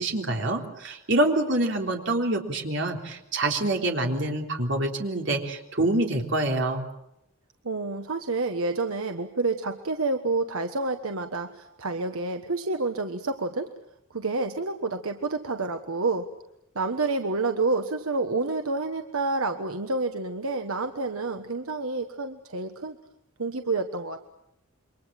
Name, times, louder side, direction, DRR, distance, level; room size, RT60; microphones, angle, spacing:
voice 1, 0.0-6.9, right 2 dB, 60° right, 2 dB, 3.6 m, -26 dB
voice 2, 7.6-13.7 14.1-16.3 16.7-23.0 23.4-24.2, right 3 dB, 85° right, 6 dB, 1.3 m, -29 dB
28.0 x 24.0 x 7.6 m, 0.81 s
head